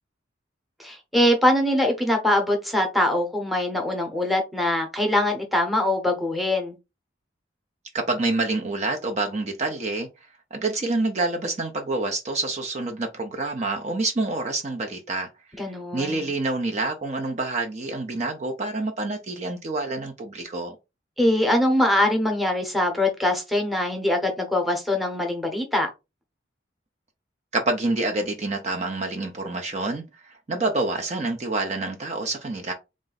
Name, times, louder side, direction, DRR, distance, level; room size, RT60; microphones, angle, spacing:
voice 1, 0.8-6.8 15.6-16.3 21.2-25.9, left 1 dB, ahead, 0.8 m, -23 dB
voice 2, 7.9-10.1 10.5-15.3 15.6-20.7 27.5-32.7, right 2 dB, 35° right, 0.5 m, -27 dB
3.8 x 2.5 x 3.9 m
head